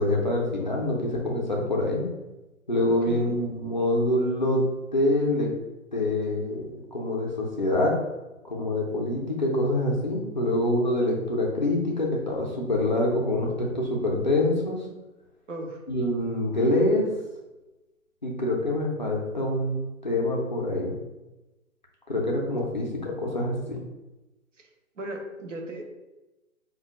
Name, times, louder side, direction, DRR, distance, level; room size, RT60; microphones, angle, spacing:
voice 1, 0.0-2.1 2.7-5.5 5.9-8.0 8.5-14.8 15.9-17.1 18.2-20.9 22.1-23.8, left 1 dB, 35° left, -2 dB, 0.4 m, -25 dB
voice 2, 2.8-3.4 15.5-15.8 25.0-25.9, right 1 dB, 60° right, 2 dB, 0.8 m, -36 dB
5.3 x 2.2 x 2.4 m, 1.0 s
figure-of-eight pair, 140°, 42 cm